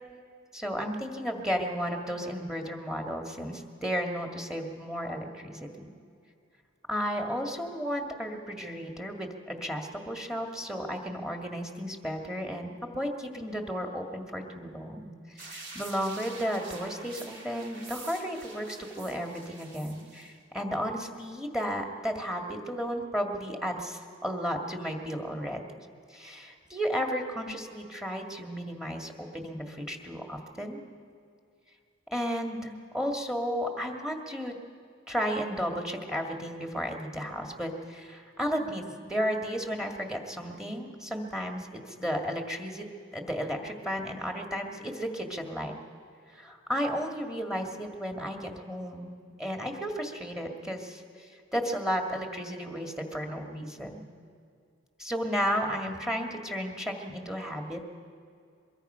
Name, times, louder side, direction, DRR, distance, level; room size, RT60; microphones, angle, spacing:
voice 1, 0.5-5.9 6.9-25.8 26.1-30.8 32.1-34.5 35.1-42.9 43.1-45.8 46.3-49.1 49.4-54.0 55.0-57.8, equal, 5° right, 3 dB, 2.0 m, -33 dB
sound 1, 15.4-20.3, right 3 dB, 60° right, 3.5 m, -46 dB
23.0 x 23.0 x 5.7 m, 2.4 s
head